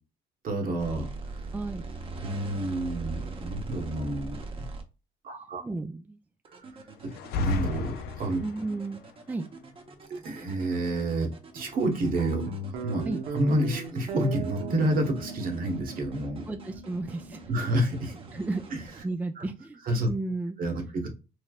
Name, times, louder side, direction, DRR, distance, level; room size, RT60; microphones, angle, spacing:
voice 1, 0.4-1.1 1.3-1.4 2.2-4.7 5.2-5.6 7.0-8.4 10.1-11.3 11.5-12.5 12.8-13.0 13.3-16.4 17.5-18.1 18.7-18.8 19.4-19.5 19.9-20.1 20.6-21.1, right 1 dB, 55° right, 3 dB, 1.2 m, -29 dB
sound 1, 0.8-4.8 6.4-19.0, right 3 dB, 30° right, 0.7 m, -42 dB
voice 2, 1.5-1.8 5.6-6.2 8.4-9.0 9.3-9.5 13.1-13.2 16.5-17.4 18.3-18.6 19.0-20.6, right 2 dB, 10° right, 7 dB, 0.3 m, -33 dB
sound 2, 7.1-8.7, left 3 dB, 70° left, 0.5 m, -31 dB
Guitar, 12.2-18.9, right 4 dB, 75° right, 0.8 m, -38 dB
3.2 x 2.9 x 2.3 m, 0.29 s
cardioid pair, 110°, 17 cm